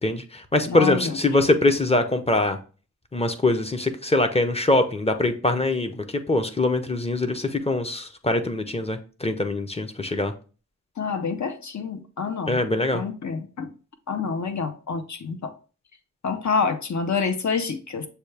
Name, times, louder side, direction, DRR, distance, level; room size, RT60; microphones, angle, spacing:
voice 1, 0.0-2.6 3.1-10.3 12.5-13.0, left 2 dB, 20° left, 0.6 m, -23 dB
voice 2, 0.7-1.2 11.0-12.6 12.9-13.7 14.1-15.5 16.2-18.1, left 5 dB, 60° left, 0.7 m, -27 dB
6.9 x 2.3 x 3.3 m
wide cardioid pair, 70°, 32 cm